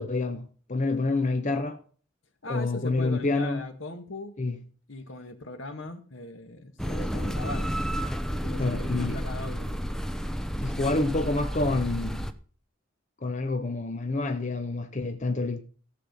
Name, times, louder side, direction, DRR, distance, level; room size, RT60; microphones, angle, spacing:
voice 1, 0.0-1.8 2.5-3.6 4.4-4.6 8.6-9.2 10.6-12.3 13.2-15.6, left 2 dB, 40° left, 0.9 m, -28 dB
voice 2, 2.4-4.3 4.9-7.7 8.3-9.9, left 2 dB, 70° left, 1.8 m, -39 dB
sound 1, 6.8-12.3, equal, 5° left, 0.8 m, -31 dB
14.5 x 7.6 x 5.3 m
head